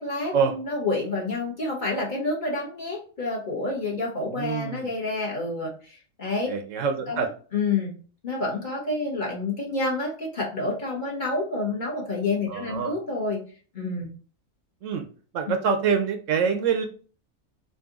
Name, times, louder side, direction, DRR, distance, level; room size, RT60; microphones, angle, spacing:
voice 1, 0.0-5.7 6.2-6.5 7.1-7.2 7.5-7.9 8.2-13.4 13.7-14.1, left 3 dB, 40° left, -3 dB, 1.2 m, -28 dB
voice 2, 4.2-4.9 6.5-7.3 12.5-12.9 14.8-15.0 15.3-16.9, right 6 dB, 70° right, 6 dB, 0.9 m, -25 dB
3.9 x 2.6 x 3.7 m, 0.40 s
omnidirectional pair, 1.4 m